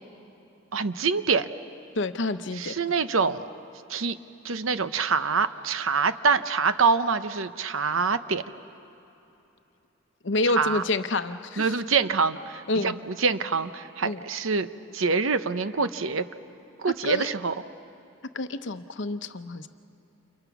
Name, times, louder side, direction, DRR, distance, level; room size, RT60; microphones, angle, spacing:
voice 1, 0.7-1.5 2.6-3.4 3.9-4.2 4.4-8.4 10.6-10.8 11.6-14.7 14.9-16.2 16.8-17.5, right 5 dB, 80° right, 11 dB, 0.8 m, -25 dB
voice 2, 2.0-2.7 10.2-11.7 12.7-12.9 14.0-14.2 17.0-17.3 18.3-19.7, left 2 dB, 60° left, 10 dB, 0.8 m, -28 dB
30.0 x 28.0 x 6.0 m, 3.0 s
head